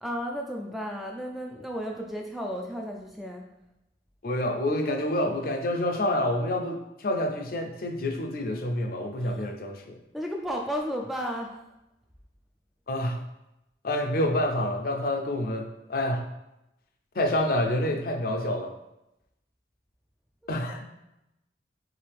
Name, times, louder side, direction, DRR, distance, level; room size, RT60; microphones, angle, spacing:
voice 1, 0.0-3.5 9.2-9.4 10.1-11.5, equal, ahead, 0 dB, 0.3 m, -33 dB
voice 2, 4.2-10.0 12.9-13.2 13.8-16.3 17.1-18.7 20.5-20.9, left 1 dB, 50° left, 3 dB, 0.5 m, -28 dB
4.7 x 3.3 x 3.4 m, 0.89 s
head